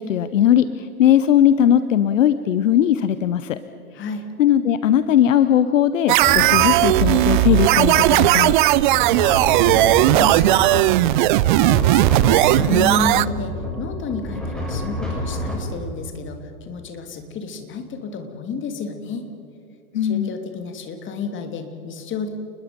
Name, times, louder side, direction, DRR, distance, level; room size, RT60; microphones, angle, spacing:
voice 1, 0.0-3.6 4.4-8.5 19.9-20.3, left 10 dB, 60° left, 13 dB, 1.0 m, -18 dB
voice 2, 3.9-4.3 9.2-9.4 9.7-19.3 19.9-22.3, left 3 dB, 25° left, 6 dB, 2.9 m, -31 dB
sound 1, 6.1-13.3, right 16 dB, 35° right, 0.5 m, -16 dB
sound 2, 6.2-15.6, left 1 dB, ahead, 6.3 m, -28 dB
29.5 x 21.0 x 5.3 m, 2.7 s
figure-of-eight pair, 100°, 43 cm